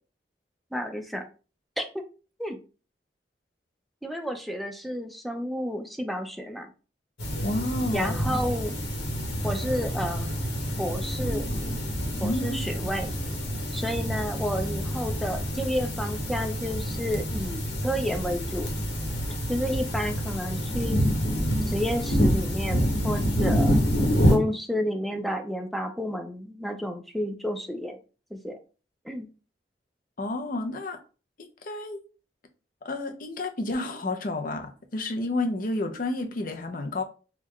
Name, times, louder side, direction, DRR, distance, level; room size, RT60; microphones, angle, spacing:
voice 1, 0.7-1.3 1.8-1.9 2.4-2.6 4.0-6.7 7.9-8.7 9.4-10.3 10.8-11.5 12.2-13.1 13.7-18.7 19.5-21.0 21.7-23.7 24.3-28.0 28.3-28.6 29.0-29.3, equal, ahead, 0.4 m, -31 dB
sound 1, 7.2-24.4, equal, 80° left, 1.1 m, -27 dB
voice 2, 7.4-8.3 12.1-12.6 30.2-31.0 31.4-32.0 32.8-37.0, left 2 dB, 50° left, 0.6 m, -30 dB
3.7 x 2.3 x 3.1 m
head